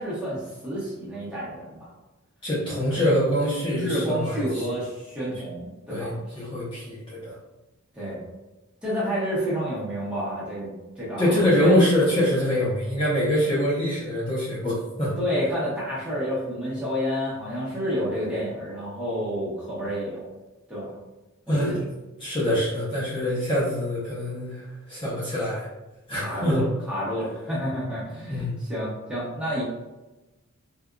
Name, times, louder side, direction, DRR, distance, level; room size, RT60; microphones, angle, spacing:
voice 1, 0.0-1.9 3.6-6.4 7.9-8.2 8.8-10.7 11.0-11.8 15.2-20.3 20.7-20.9 21.5-21.8 26.1-29.6, equal, 5° right, -8 dB, 1.1 m, -29 dB
voice 2, 2.4-4.6 5.9-7.3 11.2-15.2 21.5-21.7 22.2-25.7 26.1-26.6 28.3-28.6, left 1 dB, 25° left, -8 dB, 0.8 m, -24 dB
3.6 x 2.6 x 2.3 m, 1.1 s
head